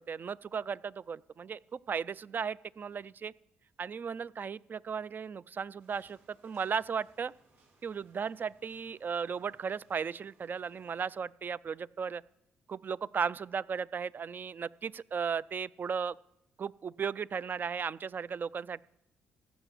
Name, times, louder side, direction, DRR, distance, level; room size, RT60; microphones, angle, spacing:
voice 1, 0.0-3.3 3.8-7.3 7.8-12.2 12.7-16.2 16.6-18.8, right 6 dB, 45° right, 20 dB, 0.4 m, -36 dB
sound 1, 5.8-11.1, right 2 dB, 60° right, 5.7 m, -68 dB
15.0 x 6.0 x 8.2 m, 0.82 s
supercardioid pair, 55°, 5 cm